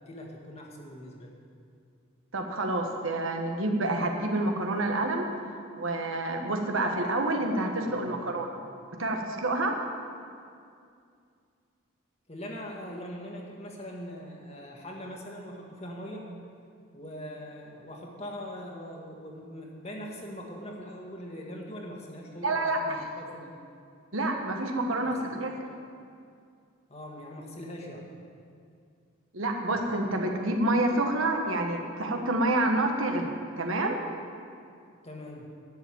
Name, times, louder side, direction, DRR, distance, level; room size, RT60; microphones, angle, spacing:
voice 1, 0.0-1.3 7.8-8.4 12.3-16.3 16.9-23.5 25.0-25.4 26.9-28.1 35.0-35.4, equal, 30° left, -1 dB, 1.7 m, -42 dB
voice 2, 2.3-5.2 5.8-8.5 9.0-9.8 22.4-23.0 24.1-25.5 29.3-34.0, right 2 dB, 75° right, 3 dB, 1.4 m, -28 dB
11.0 x 7.8 x 9.0 m, 2.3 s
head